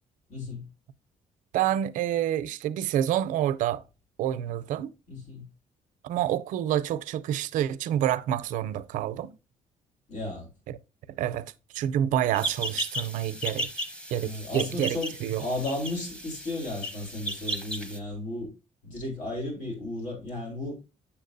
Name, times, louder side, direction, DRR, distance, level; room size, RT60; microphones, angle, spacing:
voice 1, 0.3-0.6 5.1-5.4 10.1-10.5 14.2-18.5 18.8-20.8, left 2 dB, 80° left, 3.6 m, -34 dB
voice 2, 1.5-3.8 4.2-4.9 6.0-9.3 11.2-13.8 14.1-15.4, right 11 dB, 85° right, 0.5 m, -28 dB
sound 1, 12.3-18.0, equal, 5° left, 0.9 m, -35 dB
7.2 x 7.1 x 2.6 m
cardioid pair, 135°, 13 cm